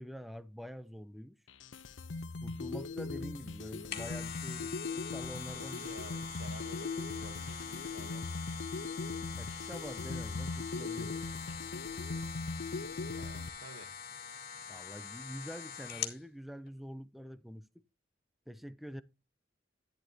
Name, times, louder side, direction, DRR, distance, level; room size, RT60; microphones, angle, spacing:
voice 1, 0.0-1.4 2.4-5.9 9.3-11.2 14.7-17.8 18.5-19.0, equal, ahead, 0.5 m, -46 dB
sound 1, 1.5-13.5, left 3 dB, 75° left, 0.7 m, -40 dB
sound 2, 3.6-16.2 16.7-16.8, left 8 dB, 50° left, 1.8 m, -44 dB
voice 2, 5.5-8.3 13.1-13.9, right 3 dB, 85° right, 1.1 m, -52 dB
11.0 x 10.5 x 2.8 m
head